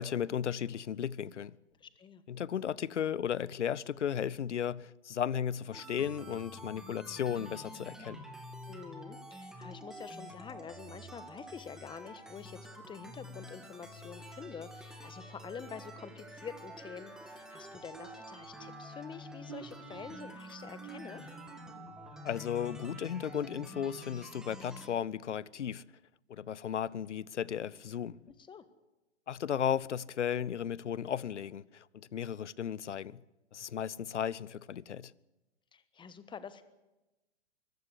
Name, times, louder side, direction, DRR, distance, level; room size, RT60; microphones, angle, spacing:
voice 1, 0.0-1.6 2.3-8.3 22.2-25.8 26.3-28.2 29.3-33.2 33.5-35.1, left 9 dB, 80° left, 0.7 m, -35 dB
voice 2, 1.8-2.2 8.7-12.6 12.9-21.2 28.5-28.6 35.7-36.6, left 6 dB, 15° left, 1.3 m, -47 dB
sound 1, 5.7-24.9, equal, ahead, 2.6 m, -48 dB
sound 2, 17.9-23.6 24.0-24.3 24.8-25.0, right 13 dB, 35° right, 1.3 m, -54 dB
24.0 x 15.0 x 8.3 m
hypercardioid pair, 115°, 35 cm